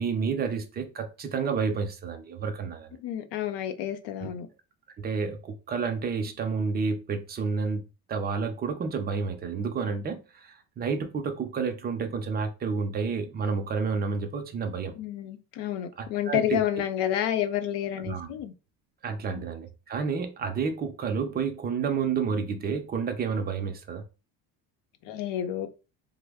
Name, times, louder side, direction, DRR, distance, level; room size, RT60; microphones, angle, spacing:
voice 1, 0.0-3.0 4.2-4.3 5.0-7.8 8.1-14.9 16.0-16.6 18.0-18.4 19.0-24.0, right 5 dB, 25° right, 0.4 m, -30 dB
voice 2, 3.0-4.5 15.0-18.5 19.3-19.5 25.1-25.7, left 11 dB, 85° left, 0.6 m, -30 dB
3.2 x 2.0 x 3.4 m
cardioid pair, 155°, 41 cm